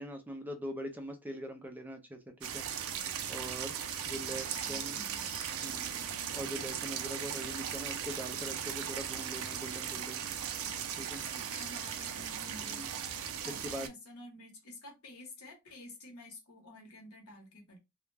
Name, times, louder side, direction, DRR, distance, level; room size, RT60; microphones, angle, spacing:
voice 1, 0.0-2.7 3.3-3.7 4.1-5.0 5.6-5.9 6.3-10.2 11.0-11.2 12.6-12.9 13.5-13.9, equal, 10° right, 0.4 m, -42 dB
sound 1, 2.4-13.9, right 8 dB, 70° right, 0.4 m, -38 dB
voice 2, 4.0-5.3 5.9-6.3 11.2-12.9 13.4-17.8, left 2 dB, 85° left, 1.1 m, -51 dB
2.3 x 2.1 x 3.2 m
head